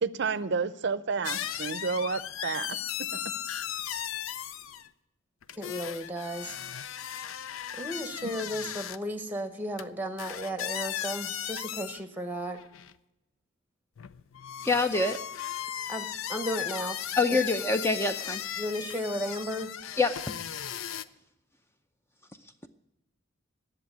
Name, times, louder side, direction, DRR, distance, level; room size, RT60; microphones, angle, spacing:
voice 1, 0.0-2.8 8.2-8.3, right 5 dB, 55° right, 16 dB, 0.6 m, -30 dB
sound 1, 1.2-4.9 5.4-9.0 9.8-9.9 10.2-12.0 12.5-12.9 14.0-21.0, left 10 dB, 75° left, 0.5 m, -36 dB
voice 2, 5.6-6.6 7.8-12.6 15.9-17.0 17.3-17.4 18.6-19.7, equal, 10° right, 9 dB, 1.0 m, -34 dB
voice 3, 14.6-15.2 17.2-18.4 20.0-20.2, left 3 dB, 10° left, 8 dB, 0.5 m, -25 dB
11.0 x 7.5 x 9.7 m, 0.90 s
head